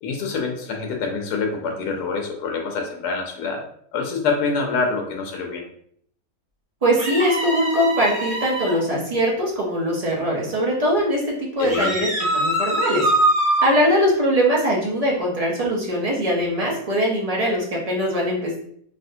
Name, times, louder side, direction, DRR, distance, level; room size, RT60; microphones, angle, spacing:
voice 1, 0.0-3.6 3.9-5.6 11.6-11.9, left 4 dB, 90° left, 2 dB, 1.1 m, -26 dB
voice 2, 6.8-13.1 13.6-18.6, equal, 40° right, -3 dB, 0.5 m, -21 dB
sound 1, 7.0-8.8 11.7-13.7, right 1 dB, 10° right, 1.2 m, -23 dB
3.3 x 2.6 x 2.7 m, 0.65 s
omnidirectional pair, 1.6 m